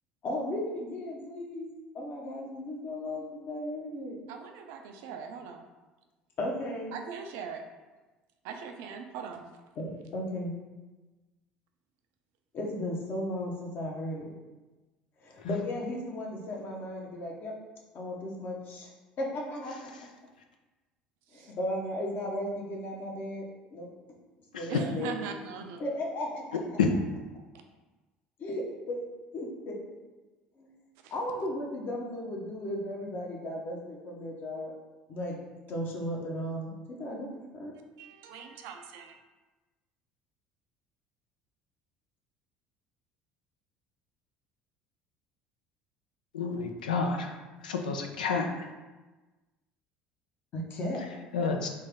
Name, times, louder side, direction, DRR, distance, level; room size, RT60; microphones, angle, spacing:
voice 1, 0.2-4.2 6.4-6.9 9.8-10.5 12.5-14.3 15.2-17.5 17.9-18.9 19.2-19.9 21.3-23.5 23.7-23.9 24.6-25.2 25.8-26.8 28.4-29.0 29.3-30.0 30.6-30.7 31.1-34.7 35.1-35.4 35.7-37.3 37.5-37.7 50.5-51.1, left 1 dB, 50° left, -1 dB, 1.0 m, -35 dB
voice 2, 4.3-5.6 6.9-7.6 8.4-9.4 21.3-21.5 24.7-25.8 31.0-31.1 38.0-39.2, right 6 dB, 65° right, 5 dB, 0.4 m, -40 dB
voice 3, 46.3-47.3 47.6-48.5 51.3-51.7, left 5 dB, 85° left, 3 dB, 0.3 m, -28 dB
3.3 x 2.8 x 3.5 m, 1.2 s
hypercardioid pair, 65°, 4 cm